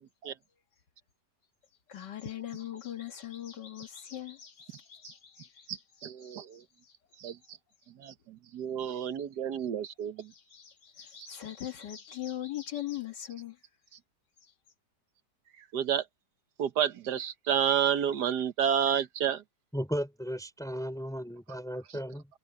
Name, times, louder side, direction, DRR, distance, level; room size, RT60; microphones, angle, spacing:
voice 1, 1.9-5.8 6.2-7.3 10.2-13.6 14.4-14.5, left 12 dB, 80° left, 2.1 m, -41 dB
voice 2, 5.7-6.6 7.2-7.4 8.0-10.3 11.2-11.3 15.7-16.0 16.6-19.4, right 9 dB, 75° right, 1.7 m, -30 dB
voice 3, 19.7-22.3, equal, ahead, 4.7 m, -35 dB
omnidirectional pair, 1.8 m